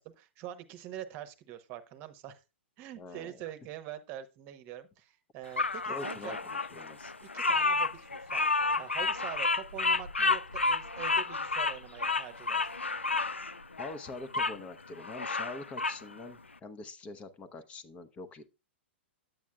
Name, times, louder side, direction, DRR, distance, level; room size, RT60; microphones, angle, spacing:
voice 1, 0.0-2.4 2.8-6.4 7.2-8.4 8.8-12.7, right 11 dB, 35° right, 10 dB, 1.0 m, -44 dB
voice 2, 3.0-3.4 5.9-7.1 13.8-18.4, left 3 dB, 20° left, 10 dB, 0.9 m, -44 dB
Bird vocalization bird call bird song, 5.6-14.6 15.0-16.0, left 3 dB, 85° left, 0.4 m, -30 dB
9.2 x 8.4 x 2.3 m, 0.29 s
figure-of-eight pair, 110°, 6 cm